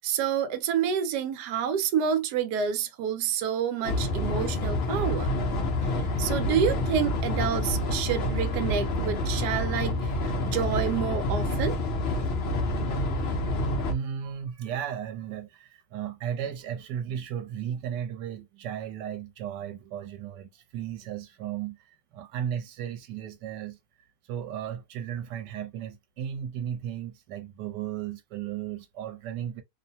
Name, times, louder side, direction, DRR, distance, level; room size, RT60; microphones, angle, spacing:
voice 1, 0.0-5.3 5.9-11.8, right 8 dB, 75° right, 1.1 m, -28 dB
sound 1, 3.8-13.9, left 1 dB, 55° left, 0.7 m, -28 dB
voice 2, 13.8-23.8 24.3-29.6, right 9 dB, 90° right, 1.2 m, -35 dB
3.0 x 2.1 x 2.6 m
omnidirectional pair, 1.8 m